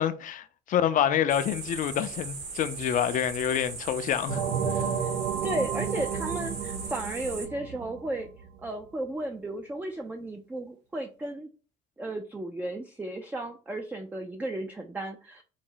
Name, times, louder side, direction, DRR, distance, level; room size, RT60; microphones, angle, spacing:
voice 1, 0.0-4.9, left 9 dB, 50° left, 0.5 m, -27 dB
sound 1, 1.3-7.5, right 4 dB, 70° right, 1.2 m, -39 dB
sound 2, 4.3-8.7, right 7 dB, 85° right, 0.6 m, -32 dB
voice 2, 5.4-8.3 8.6-11.5 12.0-15.4, right 1 dB, 10° right, 0.4 m, -34 dB
4.0 x 2.0 x 3.7 m
cardioid pair, 110°, 17 cm